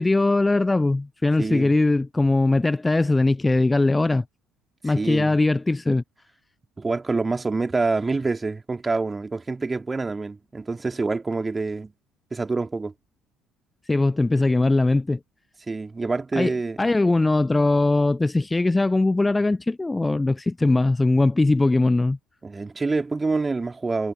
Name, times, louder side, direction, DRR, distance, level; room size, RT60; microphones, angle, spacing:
voice 1, 0.0-4.2 4.8-6.0 13.9-15.2 16.4-16.5 16.8-22.2, left 2 dB, 15° left, 0.4 m, -20 dB
voice 2, 1.4-1.7 4.8-5.4 6.8-11.9 12.3-12.9 15.7-16.8 22.4-24.1, right 3 dB, 20° right, 2.9 m, -26 dB
figure-of-eight pair, 50°, 0 cm